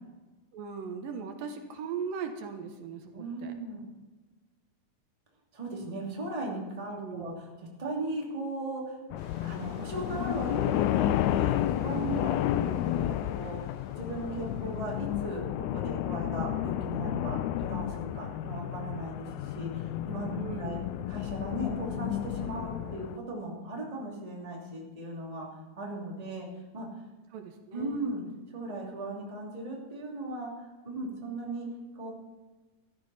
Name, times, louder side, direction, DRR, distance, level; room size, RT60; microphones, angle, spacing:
voice 1, 0.5-3.5 6.9-7.3 12.5-12.9 20.4-20.9 27.3-28.2, right 6 dB, 80° right, 5 dB, 2.8 m, -39 dB
voice 2, 3.1-3.8 5.5-9.0 9.4-20.8 21.1-25.5 25.8-26.5 26.7-26.9 27.7-28.2 28.5-30.5 30.8-31.7 31.9-32.1, right 2 dB, 10° right, -3 dB, 2.4 m, -37 dB
sound 1, 9.1-23.2, left 13 dB, 90° left, 1.7 m, -31 dB
sound 2, 9.2-15.4, left 2 dB, 40° left, 1.9 m, -50 dB
14.5 x 14.0 x 4.3 m, 1.2 s
omnidirectional pair, 4.0 m